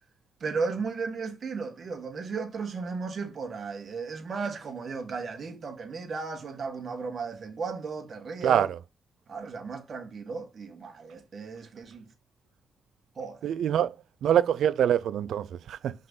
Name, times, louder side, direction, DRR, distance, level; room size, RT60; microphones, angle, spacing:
voice 1, 0.4-8.7 9.3-12.1 13.1-13.4, right 4 dB, 55° right, 1.7 m, -35 dB
voice 2, 13.4-13.9 14.2-15.9, right 10 dB, 85° right, 0.4 m, -24 dB
5.5 x 3.9 x 5.4 m
cardioid pair, 80°, 0 cm